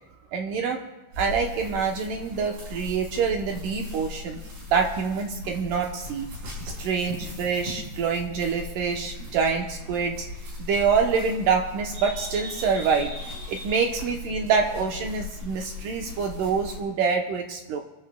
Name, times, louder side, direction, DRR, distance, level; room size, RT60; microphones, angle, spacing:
voice 1, 0.3-0.8 1.2-4.4 4.7-6.3 6.7-10.2 10.6-17.8, right 5 dB, 75° right, 2 dB, 2.0 m, -26 dB
sound 1, 1.1-16.8, left 2 dB, 60° right, 6.5 m, -39 dB
25.0 x 14.0 x 2.2 m, 1.0 s
omnidirectional pair, 4.7 m